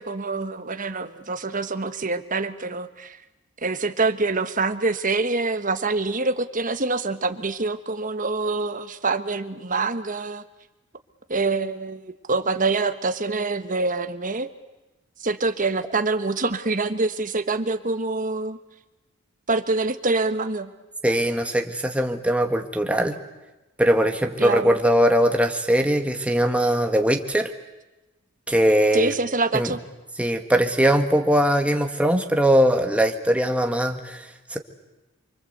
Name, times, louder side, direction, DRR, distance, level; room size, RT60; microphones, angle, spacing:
voice 1, 0.0-3.2 3.6-10.4 11.3-14.5 15.2-18.6 19.5-20.7 24.4-24.8 28.9-29.8, right 3 dB, 40° right, 9 dB, 1.4 m, -25 dB
voice 2, 21.0-23.2 23.8-27.5 28.5-29.1 29.5-29.7 30.2-34.6, equal, 5° right, 4 dB, 1.8 m, -21 dB
29.0 x 24.5 x 8.1 m, 1.0 s
head